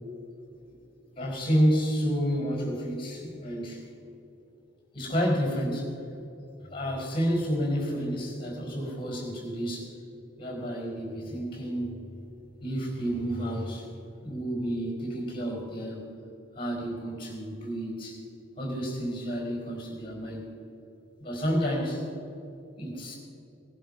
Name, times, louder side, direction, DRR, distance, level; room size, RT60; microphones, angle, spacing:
voice 1, 1.1-3.8 4.9-5.9 6.7-9.9 10.4-12.0 12.6-13.9 14.2-16.1 16.6-18.2 18.6-20.4 21.2-22.0 22.8-23.2, equal, 25° left, 0 dB, 4.3 m, -30 dB
19.5 x 11.5 x 5.4 m, 2.8 s
head